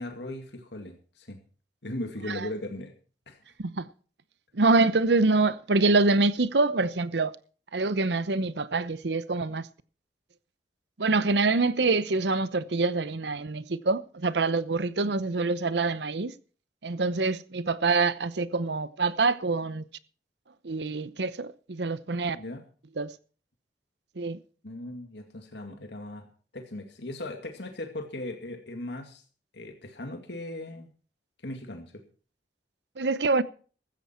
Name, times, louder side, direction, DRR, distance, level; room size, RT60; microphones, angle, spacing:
voice 1, 0.0-1.4 1.8-2.9 3.3-3.4 22.3-22.6 24.6-26.3 26.5-29.2 29.5-30.9 31.4-32.0, left 1 dB, 75° left, 2.1 m, -38 dB
voice 2, 4.5-7.3 7.7-9.7 11.0-16.3 16.8-19.8 20.6-22.4 23.0-23.1 24.2-24.4 33.0-33.4, right 3 dB, 75° right, 0.8 m, -25 dB
16.0 x 13.5 x 4.4 m
head